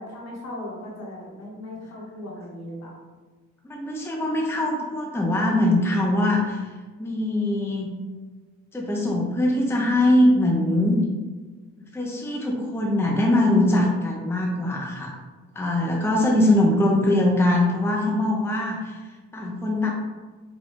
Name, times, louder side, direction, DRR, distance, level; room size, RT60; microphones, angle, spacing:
voice 1, 0.0-3.0, left 1 dB, 60° left, -4 dB, 1.5 m, -37 dB
voice 2, 3.6-6.7 7.0-7.9 8.7-11.0 11.8-15.2 15.5-19.0 19.3-19.9, left 1 dB, 10° left, -2 dB, 0.6 m, -22 dB
5.0 x 2.3 x 3.7 m, 1.3 s
cardioid pair, 90°, 30 cm